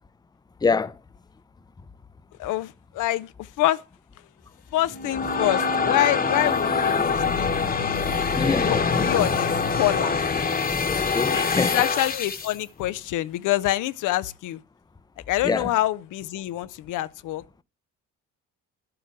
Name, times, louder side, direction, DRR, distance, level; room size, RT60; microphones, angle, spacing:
voice 1, 0.6-1.0 8.3-9.1 10.9-11.8 15.4-15.7, left 4 dB, 15° left, 0.5 m, -25 dB
voice 2, 2.4-3.8 4.7-8.1 8.7-10.2 11.3-14.6 15.3-17.6, left 15 dB, 85° left, 0.6 m, -26 dB
sound 1, 4.8-12.6, left 5 dB, 30° left, 1.1 m, -24 dB
11.0 x 7.9 x 5.9 m
cardioid pair, 90°, 30 cm